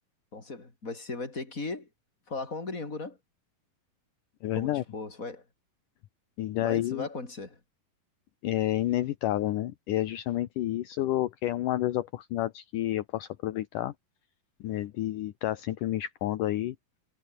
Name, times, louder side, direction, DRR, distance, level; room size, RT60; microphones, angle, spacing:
voice 1, 0.3-1.9 2.3-3.2 4.5-5.4 6.6-7.6, left 3 dB, 20° left, 4.9 m, -37 dB
voice 2, 4.4-4.8 6.4-7.1 8.4-13.9 14.6-16.8, left 14 dB, 70° left, 2.5 m, -30 dB
omnidirectional pair, 4.1 m